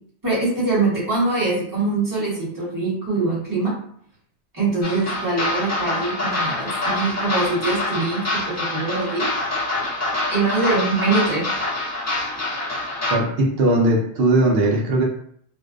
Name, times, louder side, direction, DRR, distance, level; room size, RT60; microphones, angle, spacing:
voice 1, 0.2-3.7 4.5-9.3 10.3-11.5, right 3 dB, 20° right, -9 dB, 1.0 m, -23 dB
sound 1, 4.8-13.2, left 2 dB, 25° left, 0.4 m, -25 dB
voice 2, 13.1-15.0, right 2 dB, 65° right, -1 dB, 0.7 m, -19 dB
2.6 x 2.1 x 2.4 m, 0.65 s
omnidirectional pair, 1.1 m